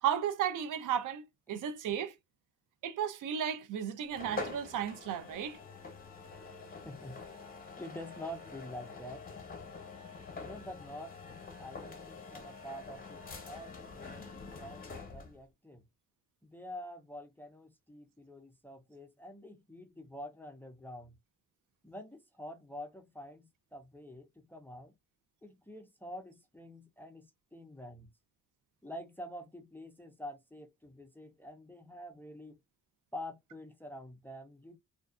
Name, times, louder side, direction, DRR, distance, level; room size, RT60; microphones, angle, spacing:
voice 1, 0.0-2.1 2.8-5.6, right 9 dB, 80° right, 0.5 m, -34 dB
sound 1, 4.1-15.4, left 4 dB, 30° left, 0.8 m, -46 dB
voice 2, 6.8-7.2 7.8-9.3 10.3-11.2 11.6-15.8 16.4-21.2 21.8-24.9 25.4-28.1 28.8-32.6 33.1-34.8, left 1 dB, 5° left, 0.4 m, -47 dB
2.5 x 2.3 x 2.3 m
cardioid pair, 120°, 31 cm